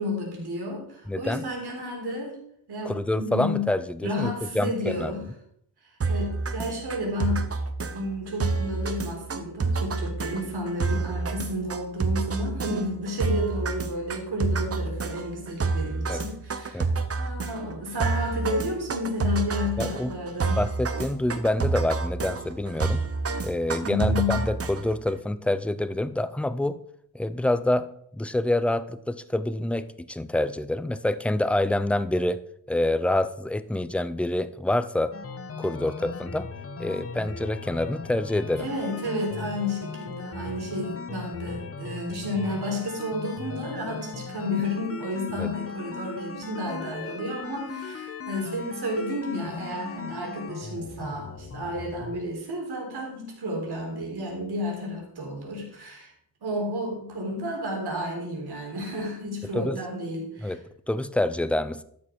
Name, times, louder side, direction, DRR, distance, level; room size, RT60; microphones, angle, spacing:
voice 1, 0.0-2.4 2.7-3.7 4.0-5.3 5.8-7.5 7.9-16.9 17.2-20.7 23.8-24.4 38.6-56.1 56.4-60.6, left 1 dB, 80° right, -1 dB, 3.9 m, -31 dB
voice 2, 1.1-1.4 2.8-5.1 16.1-16.2 16.7-16.9 19.8-20.1 20.6-23.1 23.4-26.8 27.1-27.9 28.1-32.4 32.7-35.1 35.6-36.5 36.8-38.7 45.4-45.5 59.5-59.8 60.4-60.6 60.9-61.8, left 1 dB, 5° left, 14 dB, 0.4 m, -27 dB
sound 1, 6.0-25.1, right 4 dB, 40° right, 0.9 m, -29 dB
sound 2, 35.1-52.2, left 4 dB, 35° left, 1.0 m, -38 dB
12.5 x 7.2 x 4.6 m, 0.69 s
wide cardioid pair, 175°, 38 cm